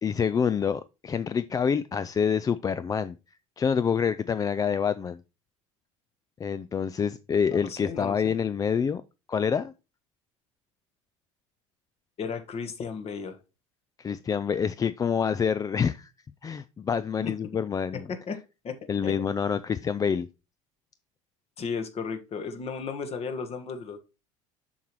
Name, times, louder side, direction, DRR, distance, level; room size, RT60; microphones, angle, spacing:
voice 1, 0.0-3.2 3.6-5.2 6.4-9.0 9.3-9.7 14.0-16.1 16.4-18.1 18.9-20.3, left 7 dB, 20° left, 0.3 m, -27 dB
voice 2, 7.5-8.4 12.2-13.3 17.2-17.3 17.9-18.4 18.6-18.8 19.0-19.1 21.6-24.0, left 5 dB, 40° left, 1.3 m, -34 dB
7.1 x 5.9 x 3.0 m
hypercardioid pair, 70°, 17 cm